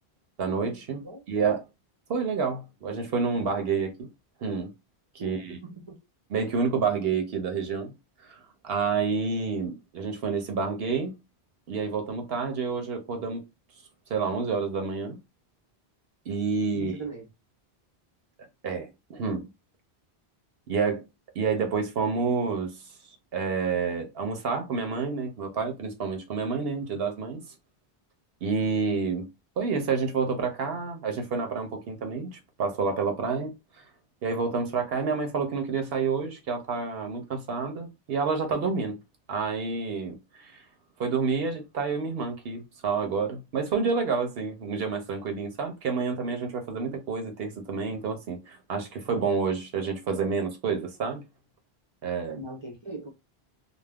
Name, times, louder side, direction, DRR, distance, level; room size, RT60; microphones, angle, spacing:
voice 1, 0.4-1.7 2.1-4.1 4.4-4.7 5.1-5.6 6.3-7.9 8.2-11.1 11.7-13.4 14.1-15.2 16.3-17.0 18.6-19.5 20.7-21.0 21.4-22.8 23.3-27.5 28.4-29.3 29.6-33.5 34.2-39.0 39.3-40.6 41.0-51.2 52.0-52.4, right 5 dB, 75° right, 0.8 m, -29 dB
voice 2, 5.2-5.9 16.7-17.3 52.4-53.1, right 3 dB, 35° right, 0.5 m, -40 dB
2.3 x 2.1 x 3.3 m
omnidirectional pair, 1.1 m